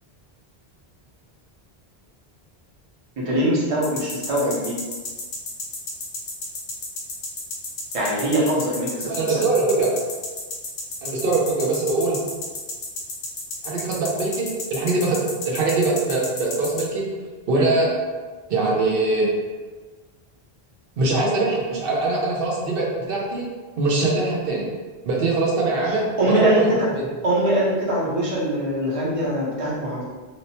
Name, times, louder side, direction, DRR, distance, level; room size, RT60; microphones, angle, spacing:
voice 1, 3.2-4.7 7.9-9.1 17.5-17.7 25.8-26.6 27.2-30.0, right 1 dB, 40° right, -6 dB, 0.7 m, -22 dB
sound 1, 3.8-16.8, left 2 dB, 70° left, 0.8 m, -32 dB
voice 2, 9.1-9.9 11.0-12.2 13.6-17.1 17.5-17.9 18.5-19.3 21.0-23.5 23.8-24.7 25.0-27.1, right 3 dB, 65° right, -3 dB, 0.8 m, -22 dB
3.0 x 2.0 x 2.7 m, 1.4 s
omnidirectional pair, 1.0 m